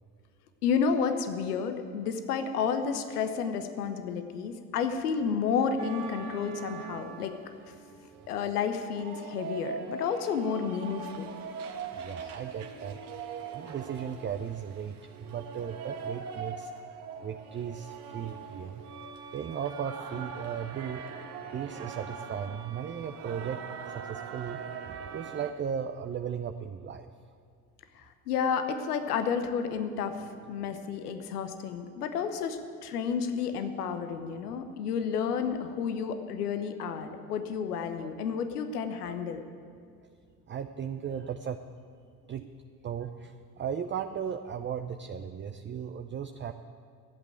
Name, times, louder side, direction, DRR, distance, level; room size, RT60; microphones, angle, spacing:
voice 1, 0.6-7.3 8.3-11.4 27.9-39.4, left 6 dB, 80° left, 8 dB, 0.9 m, -31 dB
sound 1, 5.8-25.5, right 6 dB, 75° right, 1.3 m, -42 dB
voice 2, 11.9-13.0 13.5-16.7 17.2-18.8 19.3-21.0 21.5-24.6 24.9-27.1 34.4-34.5 38.0-38.1 39.0-39.2 40.5-41.6 42.3-42.5 42.8-46.5, right 8 dB, 25° right, 7 dB, 0.6 m, -36 dB
12.5 x 8.2 x 9.1 m, 2.2 s
hypercardioid pair, 55°, 45 cm